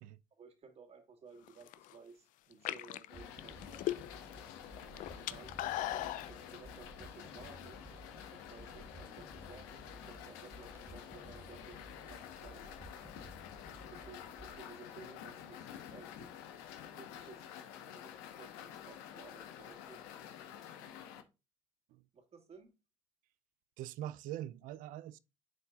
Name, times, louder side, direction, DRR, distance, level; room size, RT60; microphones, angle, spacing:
voice 1, 0.3-3.9 5.1-7.8 8.1-12.7 13.8-15.6 15.9-16.3 16.8-17.5 17.9-20.0 22.1-22.7, right 5 dB, 45° right, 2.5 m, -56 dB
sound 1, 1.5-1.9 2.5-4.3 4.6-6.3, left 14 dB, 65° left, 0.5 m, -38 dB
sound 2, 3.1-21.2, left 9 dB, 80° left, 1.1 m, -50 dB
sound 3, 3.1-14.6, equal, 15° right, 1.4 m, -55 dB
voice 2, 23.8-25.2, right 13 dB, 70° right, 0.5 m, -43 dB
10.5 x 4.4 x 2.4 m
hypercardioid pair, 70°, 15 cm